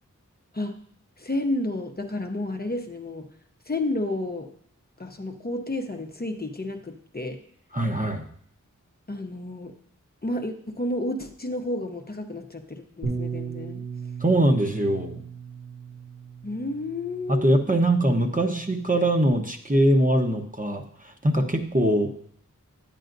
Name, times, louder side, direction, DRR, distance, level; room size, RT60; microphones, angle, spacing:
voice 1, 1.2-3.3 3.7-4.5 5.0-7.4 9.1-9.7 10.2-13.8 16.4-17.5, left 1 dB, 30° left, 4 dB, 0.8 m, -31 dB
voice 2, 7.7-8.3 14.2-15.2 17.3-22.1, right 1 dB, 25° right, 3 dB, 1.0 m, -22 dB
Bass guitar, 13.0-19.3, right 5 dB, 80° right, 2.4 m, -37 dB
9.8 x 9.1 x 2.6 m, 0.64 s
wide cardioid pair, 45°, 31 cm